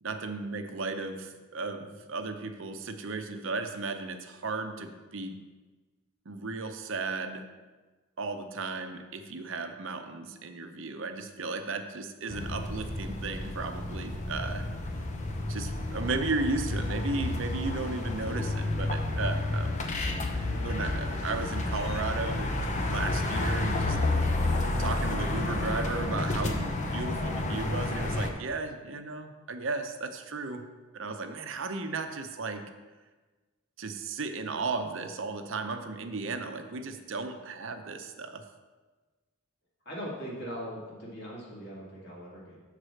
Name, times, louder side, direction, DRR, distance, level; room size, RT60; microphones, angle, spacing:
voice 1, 0.0-5.4 6.3-7.5 8.2-14.7 15.5-19.9 20.5-22.6 22.8-24.3 24.8-30.7 30.9-32.6 33.8-38.5, right 3 dB, 60° right, 7 dB, 0.6 m, -35 dB
sound 1, 12.3-28.3, left 2 dB, 35° left, 0.6 m, -30 dB
voice 2, 39.8-42.6, equal, 50° left, -5 dB, 2.3 m, -40 dB
6.6 x 4.8 x 6.4 m, 1.3 s
head